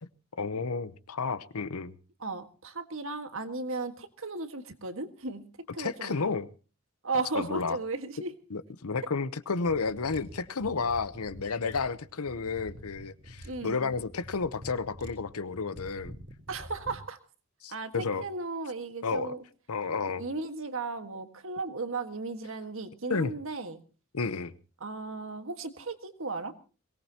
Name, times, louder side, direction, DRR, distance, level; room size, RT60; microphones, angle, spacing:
voice 1, 0.4-1.9 5.8-6.5 7.3-7.8 8.5-16.1 17.6-18.2 19.0-19.3 19.7-20.2 23.1-23.3 24.1-24.5, left 4 dB, 85° left, 0.8 m, -31 dB
voice 2, 2.2-5.4 5.7-6.3 7.0-8.3 13.4-13.8 16.5-17.2 17.7-19.4 20.2-23.8 24.8-26.5, right 3 dB, 65° right, 1.6 m, -35 dB
sound 1, 9.7-17.0, equal, 50° right, 3.4 m, -47 dB
22.5 x 18.5 x 2.9 m
head